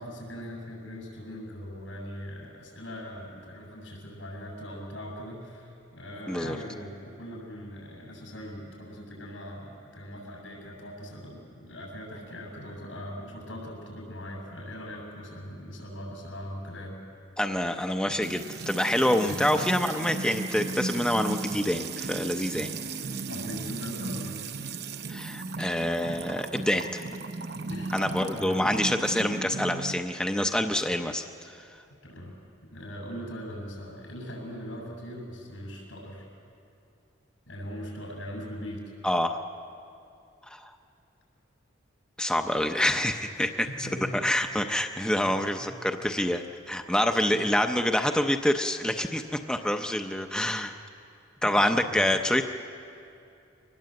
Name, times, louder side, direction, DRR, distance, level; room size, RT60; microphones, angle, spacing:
voice 1, 0.0-17.0 19.2-19.4 22.6-22.7 23.3-24.4 27.7-28.0 28.3-28.6 32.0-32.4 32.7-36.3 37.5-38.8 43.4-43.5 43.8-44.2 45.3-45.7 47.2-47.4 49.5-49.8 51.4-52.1, equal, 90° left, 0 dB, 7.0 m, -40 dB
voice 2, 17.4-22.7 25.1-27.0 27.9-31.6 39.0-39.4 40.4-40.8 42.2-50.7 51.4-52.4, left 1 dB, 5° left, 5 dB, 0.6 m, -27 dB
Music / Water tap faucet / Trickle dribble, 18.2-30.0, right 3 dB, 55° right, 0.8 m, -36 dB
24.5 x 20.0 x 7.7 m, 2.6 s
head